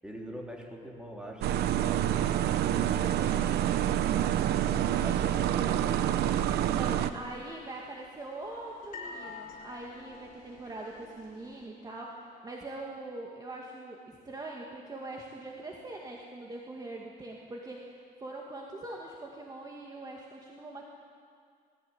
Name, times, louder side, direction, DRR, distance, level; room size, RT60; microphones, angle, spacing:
voice 1, 0.0-2.0 2.6-3.2 4.7-5.9, equal, 5° right, -1 dB, 3.7 m, -44 dB
sound 1, 1.4-7.1, right 11 dB, 75° right, 1.0 m, -27 dB
voice 2, 3.2-3.5 6.7-20.9, right 2 dB, 25° right, -1 dB, 2.3 m, -42 dB
sound 2, 5.3-11.7, left 4 dB, 55° left, 5.1 m, -49 dB
20.5 x 15.5 x 8.9 m, 2.2 s
cardioid pair, 110°, 17 cm